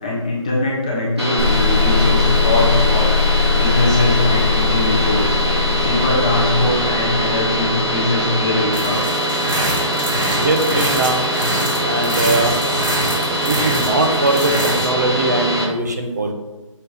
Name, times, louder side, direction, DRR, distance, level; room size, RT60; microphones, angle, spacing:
voice 1, 0.0-3.2 3.5-5.4 5.8-9.0, left 2 dB, 10° left, -5 dB, 0.6 m, -21 dB
sound 1, 1.2-15.6, right 1 dB, 50° right, 2.1 m, -22 dB
sound 2, 1.4-8.5, left 5 dB, 10° right, 2.4 m, -20 dB
sound 3, 8.7-14.9, right 1 dB, 75° right, 2.4 m, -25 dB
voice 2, 10.4-11.2 11.8-12.6 13.4-16.3, right 2 dB, 30° right, 3 dB, 0.8 m, -20 dB
6.4 x 3.8 x 5.4 m, 1.1 s
figure-of-eight pair, 165°, 17 cm